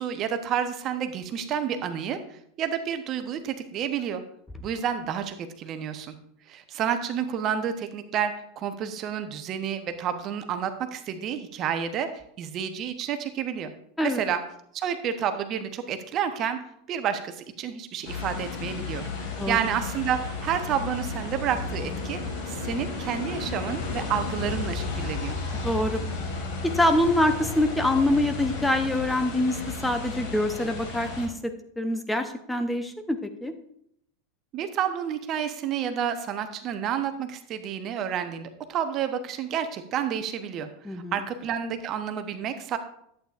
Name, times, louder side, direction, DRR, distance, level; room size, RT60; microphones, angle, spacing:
voice 1, 0.0-2.2 2.6-4.2 4.6-6.1 6.5-12.1 12.4-13.7 14.0-14.4 14.7-16.6 16.9-19.1 19.5-22.2 22.5-25.4 34.5-42.8, right 8 dB, 40° right, 9 dB, 0.8 m, -30 dB
sound 1, 18.0-31.3, left 4 dB, 55° left, 3.9 m, -33 dB
voice 2, 25.6-26.0 26.7-33.5 40.8-41.3, left 1 dB, 5° left, 7 dB, 0.8 m, -25 dB
11.0 x 8.6 x 2.5 m, 0.71 s
figure-of-eight pair, 85°, 0 cm